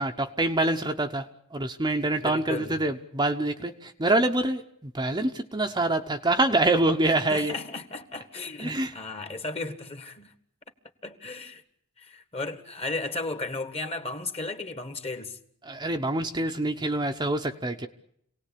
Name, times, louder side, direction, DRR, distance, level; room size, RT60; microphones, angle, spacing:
voice 1, 0.0-7.5 8.6-8.9 15.6-17.9, right 2 dB, 20° right, 0.9 m, -26 dB
voice 2, 2.2-2.8 7.3-10.3 11.0-11.6 12.0-15.4, left 2 dB, 30° left, 1.7 m, -35 dB
26.5 x 18.5 x 8.6 m
head